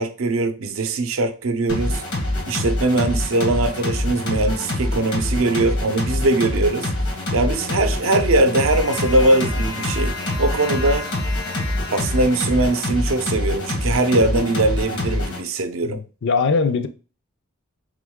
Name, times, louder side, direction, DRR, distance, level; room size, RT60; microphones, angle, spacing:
voice 1, 0.0-2.0 2.5-6.9 7.3-11.1 11.9-16.0, right 2 dB, 65° right, 0.6 m, -21 dB
sound 1, 1.7-15.4, left 1 dB, 80° left, 1.3 m, -25 dB
voice 2, 15.8-16.9, left 4 dB, 55° left, 0.5 m, -21 dB
3.6 x 3.0 x 3.6 m
head